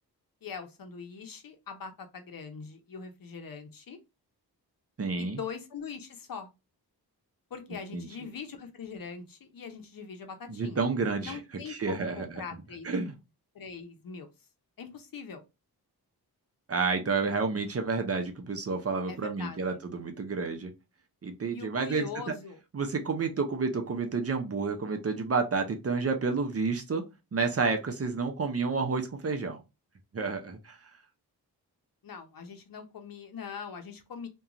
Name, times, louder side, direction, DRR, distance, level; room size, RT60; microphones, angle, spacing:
voice 1, 0.4-4.0 5.2-6.5 7.5-10.9 11.2-12.9 13.5-14.3 14.8-15.4 19.1-19.8 21.5-22.6 32.0-34.3, left 6 dB, 60° left, 0.7 m, -42 dB
voice 2, 5.0-5.4 7.9-8.1 10.5-11.4 11.7-12.4 12.8-13.1 16.7-20.7 21.2-22.3 22.7-27.0 27.3-29.6 30.1-30.8, right 4 dB, 40° right, 0.6 m, -30 dB
2.4 x 2.2 x 2.8 m
cardioid pair, 60°, 39 cm